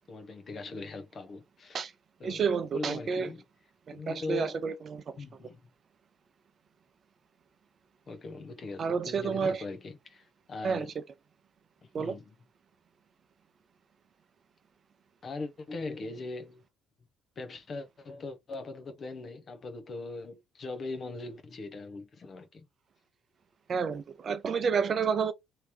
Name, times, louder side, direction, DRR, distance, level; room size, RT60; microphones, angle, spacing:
voice 1, 0.1-1.8 2.2-3.4 3.9-4.6 5.2-5.6 8.1-10.9 12.0-12.3 15.2-16.6 17.4-22.6, left 3 dB, 45° left, 1.0 m, -40 dB
voice 2, 2.2-3.3 3.9-5.0 8.8-9.6 10.6-11.0 11.9-12.2 23.7-25.3, right 6 dB, 45° right, 0.6 m, -30 dB
3.1 x 2.9 x 3.0 m
hypercardioid pair, 60°, 0 cm